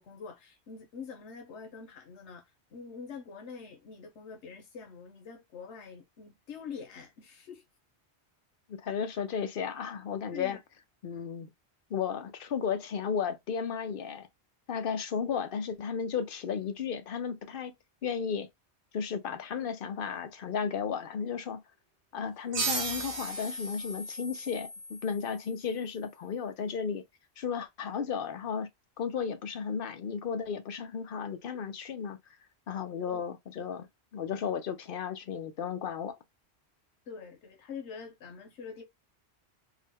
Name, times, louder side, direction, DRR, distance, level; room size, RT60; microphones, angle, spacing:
voice 1, 0.0-7.6 10.3-10.6 37.1-38.8, left 6 dB, 85° left, 1.1 m, -45 dB
voice 2, 8.7-10.6 11.0-11.5 11.9-14.3 14.7-17.7 18.0-18.5 18.9-21.6 22.1-27.0 27.4-28.7 29.0-32.2 32.7-33.9 34.1-36.1, left 6 dB, 60° left, 0.8 m, -34 dB
sound 1, 22.5-25.8, right 3 dB, 45° right, 0.8 m, -36 dB
3.7 x 2.1 x 3.4 m
omnidirectional pair, 1.1 m